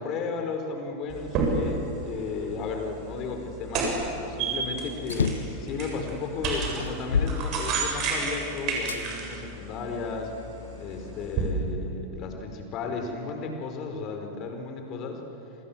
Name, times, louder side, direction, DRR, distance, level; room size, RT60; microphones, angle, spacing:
voice 1, 0.0-4.0 4.3-10.3 10.8-15.2, left 4 dB, 35° left, 4 dB, 4.7 m, -34 dB
sound 1, 1.1-11.5, right 4 dB, 40° right, 7.5 m, -32 dB
sound 2, 5.0-5.6 6.3-6.4 6.8-8.2 8.9-9.0 9.8-10.8, left 5 dB, 70° left, 1.3 m, -29 dB
30.0 x 26.0 x 7.6 m, 2.9 s
figure-of-eight pair, 90°, 0 cm